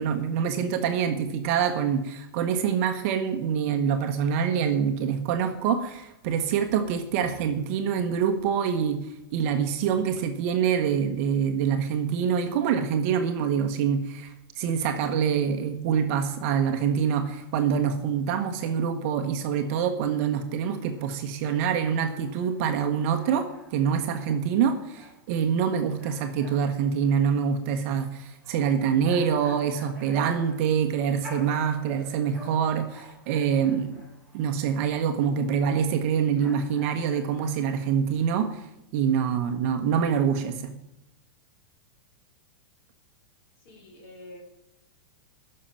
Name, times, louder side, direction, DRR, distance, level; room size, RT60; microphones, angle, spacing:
voice 1, 0.0-9.0 9.3-33.9 34.3-38.7 38.9-40.7, right 7 dB, 35° right, 6 dB, 1.1 m, -25 dB
sound 1, 20.7-34.5 34.8-37.8, equal, 5° left, 5.2 m, -50 dB
voice 2, 43.6-44.4, left 1 dB, 35° left, 3 dB, 3.4 m, -46 dB
9.7 x 6.6 x 8.8 m, 0.91 s
supercardioid pair, 170°, 12 cm